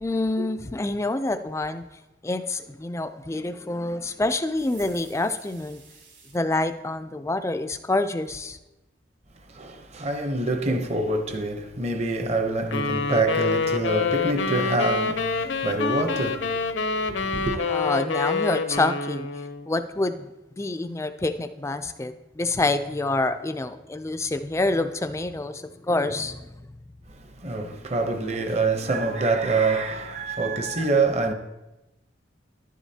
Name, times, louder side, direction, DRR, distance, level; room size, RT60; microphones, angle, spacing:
voice 1, 0.0-1.8 2.2-5.8 6.3-8.6 17.6-19.3 19.7-20.3 20.6-26.5, left 2 dB, 15° left, 0.3 m, -27 dB
sound 1, 4.5-6.4, right 5 dB, 70° right, 3.3 m, -50 dB
voice 2, 9.5-17.5 27.1-31.3, right 3 dB, 35° right, 0.8 m, -26 dB
sound 2, 12.7-19.7, left 4 dB, 65° left, 0.6 m, -27 dB
11.5 x 10.0 x 2.8 m
head